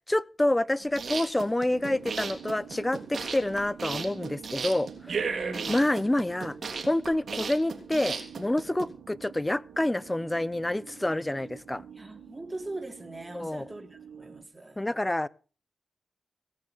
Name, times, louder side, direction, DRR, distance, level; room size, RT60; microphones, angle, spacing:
voice 1, 0.1-5.4 5.7-6.6 6.9-11.8 13.3-13.7 14.8-15.3, left 1 dB, 15° left, 0.8 m, -28 dB
sound 1, 0.8-8.8, right 5 dB, 65° right, 3.2 m, -35 dB
sound 2, 1.7-14.4, right 7 dB, 90° right, 1.6 m, -48 dB
voice 2, 5.1-5.8 12.0-14.8, right 2 dB, 25° right, 3.0 m, -41 dB
18.0 x 6.5 x 7.7 m
cardioid pair, 55°, 0 cm